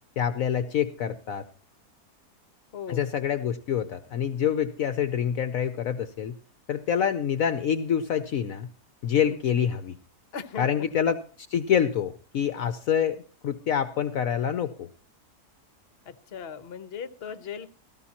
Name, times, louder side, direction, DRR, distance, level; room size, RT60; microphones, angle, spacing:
voice 1, 0.2-1.5 2.9-6.3 6.7-8.7 9.0-10.0 10.6-14.9, left 8 dB, 65° left, 11 dB, 1.1 m, -26 dB
voice 2, 2.7-3.1 9.3-9.4 10.3-10.9 16.0-17.7, left 7 dB, 45° left, 12 dB, 1.1 m, -38 dB
17.0 x 14.0 x 2.9 m, 0.39 s
omnidirectional pair, 1.7 m